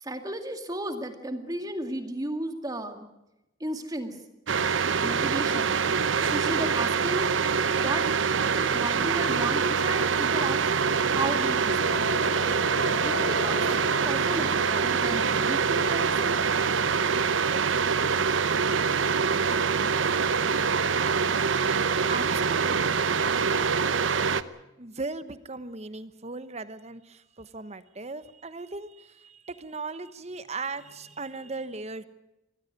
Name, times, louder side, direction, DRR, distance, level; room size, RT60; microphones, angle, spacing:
voice 1, 0.0-3.1 3.6-4.2 5.0-5.8 6.3-7.3 7.8-8.1 8.5-10.6 11.1-12.0 13.0-13.7 14.0-16.4, right 1 dB, 20° right, 6 dB, 2.1 m, -34 dB
sound 1, 4.5-24.4, right 5 dB, 80° right, 0.8 m, -25 dB
sound 2, 7.4-16.4, left 4 dB, 55° left, 1.4 m, -38 dB
voice 2, 21.7-23.5 24.3-24.4 24.8-32.1, right 3 dB, 35° right, 13 dB, 1.0 m, -38 dB
23.0 x 15.5 x 9.6 m, 0.92 s
head